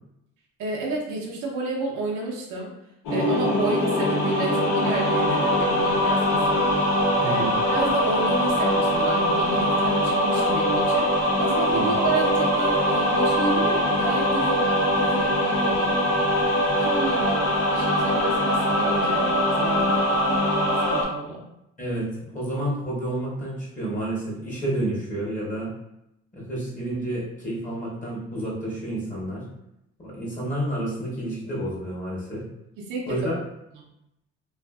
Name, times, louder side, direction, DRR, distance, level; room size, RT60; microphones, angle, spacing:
voice 1, 0.6-2.7 3.1-6.7 7.2-7.4 7.7-16.0 16.8-19.2 19.6-19.9 20.9-21.4 32.8-33.3, right 3 dB, 80° right, -2 dB, 0.7 m, -30 dB
sound 1, 3.1-21.0, equal, 80° left, 0.9 m, -22 dB
voice 2, 7.2-7.6 11.7-11.9 21.8-25.7 26.3-29.4 30.0-32.4 33.1-33.4, right 1 dB, 25° left, -5 dB, 0.9 m, -30 dB
2.5 x 2.4 x 2.3 m, 0.84 s
cardioid pair, 90°, 30 cm